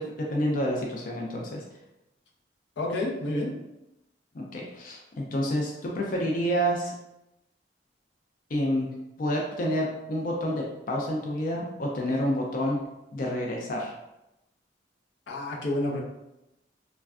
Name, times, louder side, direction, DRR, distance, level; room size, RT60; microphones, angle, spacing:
voice 1, 0.0-1.6 4.3-6.9 8.5-8.9 9.2-12.8 13.1-13.9, equal, 50° left, -2 dB, 0.4 m, -28 dB
voice 2, 2.8-3.5 15.3-16.0, left 1 dB, 90° left, -2 dB, 0.6 m, -29 dB
3.3 x 2.1 x 2.4 m, 0.91 s
head